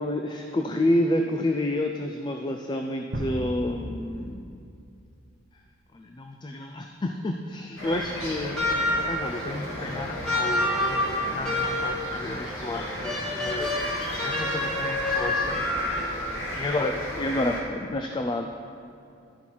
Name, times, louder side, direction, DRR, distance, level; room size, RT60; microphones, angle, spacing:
voice 1, 0.0-4.6 5.9-15.6 16.0-16.1 16.5-18.5, left 1 dB, 20° left, 4 dB, 0.3 m, -30 dB
sound 1, 3.1-5.1, equal, 50° right, 0.9 m, -35 dB
sound 2, 7.8-17.6, equal, 70° left, 1.9 m, -35 dB
sound 3, 8.6-9.3 10.2-12.1 13.0-16.2, left 1 dB, 5° left, 1.4 m, -27 dB
12.0 x 5.6 x 4.6 m, 2.6 s
head